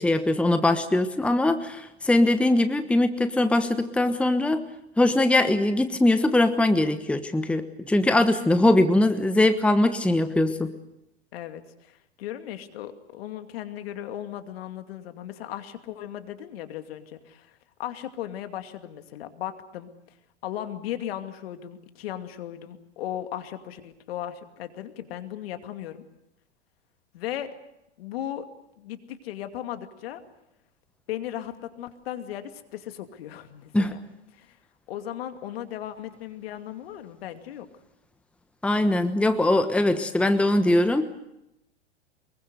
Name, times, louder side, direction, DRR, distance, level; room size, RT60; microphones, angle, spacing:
voice 1, 0.0-4.6 5.0-10.7 33.7-33.9 38.6-41.1, left 1 dB, 5° left, 10 dB, 1.2 m, -21 dB
voice 2, 11.3-20.2 20.4-26.0 27.1-27.5 28.0-28.5 28.8-30.2 31.1-34.0 34.3-34.6 34.9-37.7, left 11 dB, 60° left, 8 dB, 2.5 m, -37 dB
24.0 x 22.0 x 8.1 m, 0.85 s
hypercardioid pair, 105°, 34 cm